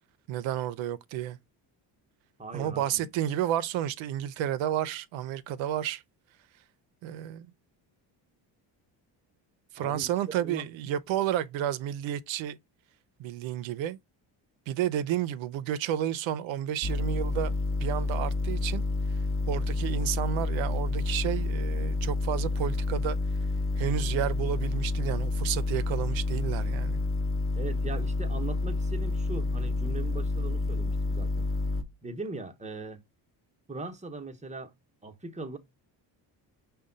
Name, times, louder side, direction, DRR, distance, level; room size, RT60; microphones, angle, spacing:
voice 1, 0.3-1.4 2.5-6.0 7.0-7.5 9.7-12.6 13.2-14.0 14.7-17.5 17.8-18.8 19.5-23.2 23.8-27.0, right 11 dB, 70° right, 0.6 m, -31 dB
voice 2, 2.4-3.1 9.8-10.6 27.6-31.5 32.0-33.0 33.7-34.7 35.0-35.6, right 3 dB, 15° right, 0.9 m, -40 dB
sound 1, 16.8-31.8, left 3 dB, 25° left, 0.9 m, -29 dB
5.1 x 2.2 x 3.8 m
supercardioid pair, 75°, 49 cm